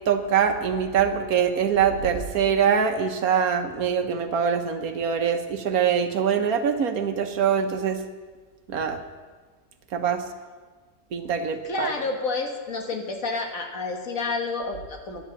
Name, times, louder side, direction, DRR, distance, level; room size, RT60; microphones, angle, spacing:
voice 1, 0.1-8.0 8.7-9.0 9.9-10.2 11.1-11.9, right 7 dB, 70° right, 7 dB, 1.5 m, -23 dB
voice 2, 11.6-15.2, left 3 dB, 60° left, 3 dB, 2.0 m, -29 dB
11.5 x 10.0 x 7.0 m, 1.4 s
omnidirectional pair, 1.6 m